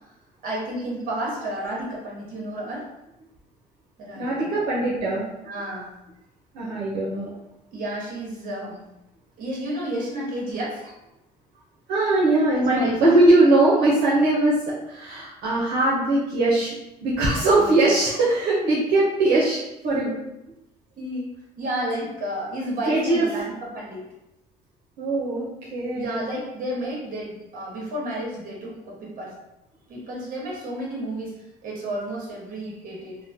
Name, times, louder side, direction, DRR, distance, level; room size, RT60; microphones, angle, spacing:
voice 1, 0.4-2.9 4.0-4.7 5.5-5.9 7.7-8.8 9.4-10.8 12.5-13.0 17.4-18.1 20.9-24.1 25.9-29.3 29.9-31.3 31.6-33.2, right 1 dB, 55° right, -4 dB, 1.2 m, -31 dB
voice 2, 4.2-5.2 6.5-7.3 11.9-14.6 14.9-16.8 17.0-20.2 22.9-23.2 25.0-25.4 25.7-26.2, right 2 dB, 75° right, -7 dB, 0.7 m, -20 dB
3.0 x 2.1 x 2.7 m, 0.91 s
cardioid pair, 110°, 17 cm